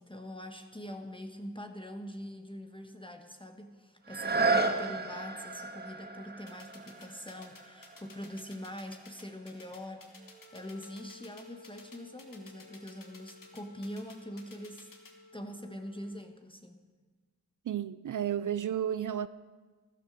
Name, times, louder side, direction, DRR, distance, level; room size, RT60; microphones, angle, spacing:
voice 1, 0.0-14.9 15.3-16.8, equal, 10° left, 1.3 m, -43 dB
sound 1, 4.0-9.7 10.3-10.4, right 3 dB, 25° right, 1.8 m, -34 dB
sound 2, 6.5-15.1, left 4 dB, 55° left, 2.8 m, -53 dB
Wind instrument woodwind instrument, 10.1-16.4, left 3 dB, 80° left, 3.9 m, -56 dB
voice 2, 17.6-19.3, right 10 dB, 50° right, 0.5 m, -32 dB
14.0 x 12.0 x 6.4 m
cardioid pair, 55°, 40 cm